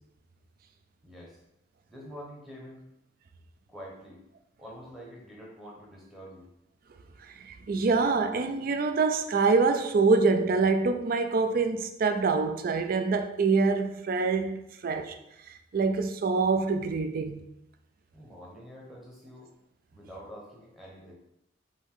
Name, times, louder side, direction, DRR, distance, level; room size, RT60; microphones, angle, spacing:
voice 1, 1.0-1.4 1.9-2.9 3.7-4.2 4.6-6.5 18.1-19.5 19.9-21.1, equal, ahead, 0.9 m, -46 dB
voice 2, 7.2-15.2 15.5-17.5, right 4 dB, 45° right, 0.3 m, -25 dB
4.9 x 2.6 x 3.6 m
head